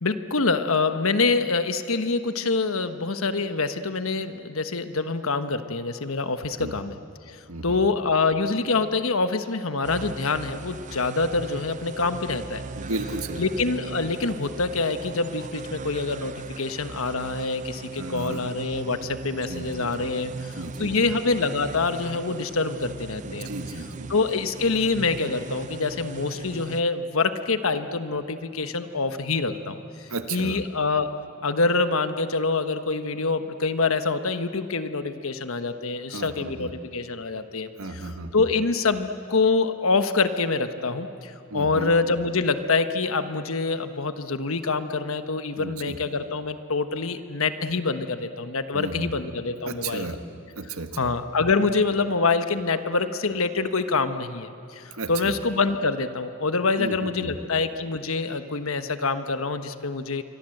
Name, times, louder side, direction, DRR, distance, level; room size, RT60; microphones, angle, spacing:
voice 1, 0.0-6.9 7.3-12.6 13.4-23.5 24.1-31.1 31.4-38.0 38.3-50.1 51.0-60.2, left 3 dB, 70° left, 9 dB, 1.3 m, -26 dB
voice 2, 7.5-7.8 12.8-13.4 18.0-18.4 19.3-21.1 23.2-24.1 30.1-30.6 36.1-36.7 37.8-38.5 41.5-41.9 45.6-46.0 48.7-49.1 49.7-50.2 50.6-51.1 55.0-55.4 56.8-57.3, right 2 dB, 75° right, 8 dB, 1.5 m, -34 dB
sound 1, 9.8-26.8, right 3 dB, 35° right, 0.6 m, -38 dB
28.0 x 24.0 x 7.9 m, 2.7 s
head